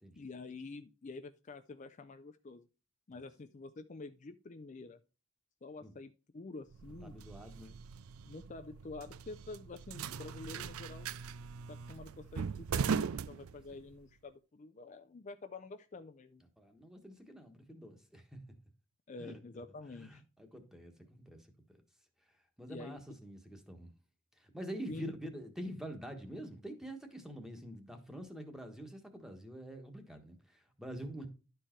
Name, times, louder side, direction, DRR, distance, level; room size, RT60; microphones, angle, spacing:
voice 1, 0.2-2.6 3.1-5.0 5.6-7.2 8.3-11.2 11.7-16.4 19.1-20.2 22.7-23.0 24.9-25.1, left 3 dB, 35° left, 0.4 m, -48 dB
sound 1, 6.7-14.0, right 6 dB, 85° right, 0.4 m, -40 dB
voice 2, 7.0-7.8 16.6-18.4 19.2-19.4 19.9-21.5 22.6-23.9 24.4-31.3, equal, ahead, 1.3 m, -46 dB
11.5 x 4.6 x 4.4 m
head